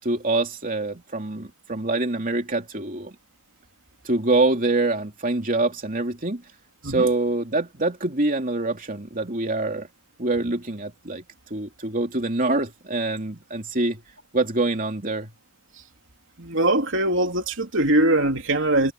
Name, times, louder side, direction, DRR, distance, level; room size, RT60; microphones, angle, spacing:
voice 1, 0.0-3.1 4.0-6.4 6.8-9.9 10.2-11.2 11.5-14.0 14.3-15.3, right 2 dB, 40° right, 3.0 m, -25 dB
voice 2, 16.4-18.9, right 1 dB, 60° right, 3.6 m, -21 dB
head